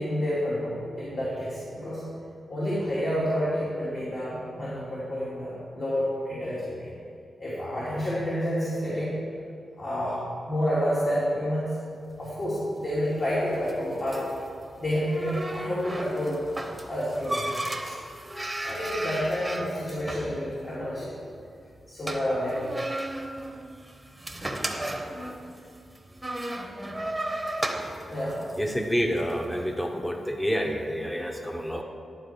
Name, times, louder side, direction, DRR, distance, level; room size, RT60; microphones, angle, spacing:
voice 1, 0.0-2.0 2.5-6.9 7.4-9.2 9.8-10.2 10.5-11.8 12.2-14.2 14.8-16.4 16.9-17.5 17.9-18.0 18.6-21.1 21.9-22.7 28.1-28.4, equal, 50° left, -10 dB, 2.7 m, -29 dB
sound 1, 12.1-29.4, right 1 dB, 15° right, 0.9 m, -36 dB
voice 2, 28.6-31.8, equal, 10° left, 3 dB, 0.9 m, -28 dB
11.5 x 4.6 x 6.6 m, 2.3 s
cardioid pair, 85°, 0 cm